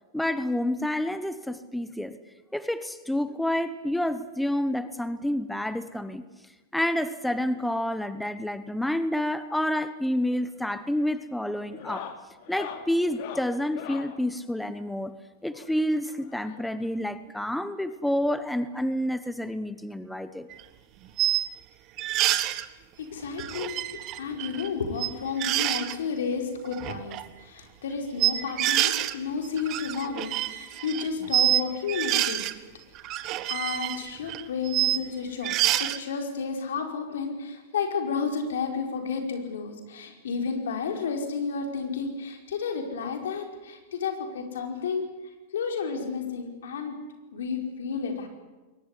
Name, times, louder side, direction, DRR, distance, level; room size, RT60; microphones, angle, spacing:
voice 1, 0.1-2.2 2.5-6.2 6.7-12.1 12.5-15.1 15.4-20.5, left 1 dB, 5° left, 12 dB, 1.1 m, -29 dB
sound 1, 10.1-10.5 10.7-11.1 11.6-14.2 15.5-16.9 17.9-18.0 18.2-18.4 18.8-18.9 20.2-20.3 21.6-21.7, left 10 dB, 60° left, 2.9 m, -42 dB
sound 2, 20.5-20.6 21.2-21.5 22.0-22.6 23.4-24.7 24.9-25.1 25.4-25.9 26.6-27.2 28.2-29.1 29.4-31.6 31.9-32.5 32.9-35.0 35.4-36.0, right 14 dB, 40° right, 1.5 m, -27 dB
voice 2, 23.0-32.4 33.1-45.1 45.5-47.0 47.3-48.3, left 5 dB, 85° left, 4 dB, 5.0 m, -32 dB
22.0 x 19.0 x 10.0 m, 1.2 s
supercardioid pair, 135°, 0 cm